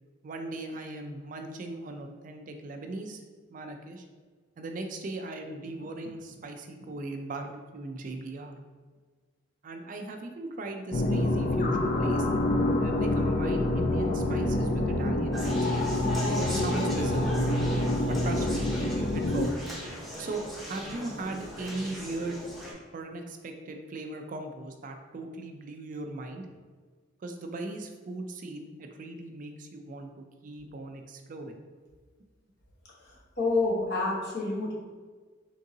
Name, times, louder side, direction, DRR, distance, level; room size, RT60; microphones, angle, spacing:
voice 1, 0.2-3.2 3.5-4.0 4.6-8.6 9.6-12.3 12.8-15.7 16.5-17.4 18.0-18.6 19.1-19.6 20.2-22.4 22.9-26.5 27.2-31.6, right 2 dB, 45° right, 5 dB, 0.4 m, -38 dB
sound 1, 10.9-19.5, left 1 dB, 40° left, 0.4 m, -27 dB
Conversation, 15.3-22.7, equal, ahead, 0.7 m, -38 dB
voice 2, 33.4-34.7, left 3 dB, 60° left, -4 dB, 1.0 m, -27 dB
3.7 x 3.7 x 2.7 m, 1.5 s
head